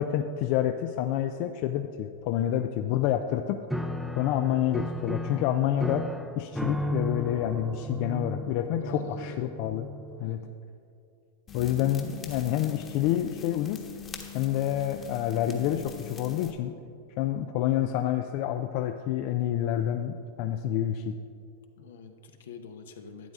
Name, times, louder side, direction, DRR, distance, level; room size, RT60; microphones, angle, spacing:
voice 1, 0.0-3.6 4.1-6.1 6.4-9.9 10.2-10.5 11.5-13.8 14.3-16.8 17.2-21.2, left 11 dB, 55° left, 7 dB, 0.4 m, -28 dB
Piano, 3.7-10.5, left 1 dB, 5° right, 0.5 m, -35 dB
voice 2, 8.8-9.4 10.2-10.5 21.8-23.3, left 5 dB, 75° left, 6 dB, 1.0 m, -45 dB
sound 1, 11.5-16.5, left 7 dB, 25° left, 1.2 m, -43 dB
12.0 x 8.9 x 3.7 m, 2.5 s
hypercardioid pair, 115°, 0 cm